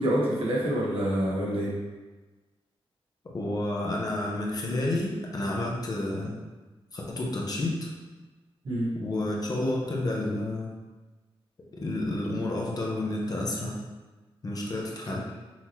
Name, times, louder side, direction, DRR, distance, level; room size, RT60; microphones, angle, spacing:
voice 1, 0.0-1.7 8.6-8.9, equal, 70° right, -5 dB, 1.3 m, -26 dB
voice 2, 3.2-6.3 6.9-7.8 8.9-10.7 11.7-13.8 14.4-15.2, left 1 dB, 40° left, -2 dB, 0.8 m, -30 dB
5.6 x 2.9 x 3.1 m, 1.2 s
wide cardioid pair, 130°, 10 cm